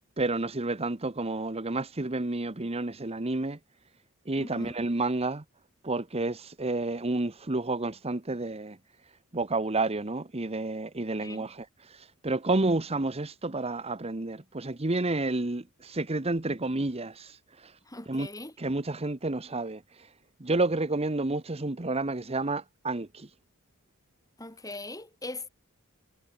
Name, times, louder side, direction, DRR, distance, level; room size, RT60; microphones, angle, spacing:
voice 1, 0.2-3.6 4.3-5.4 5.8-8.8 9.3-17.8 18.1-18.3 18.6-20.1 20.4-23.3, right 2 dB, 30° right, 1.1 m, -30 dB
voice 2, 4.4-4.8 11.2-11.5 17.8-18.6 24.4-25.5, left 2 dB, 15° left, 7.1 m, -41 dB
head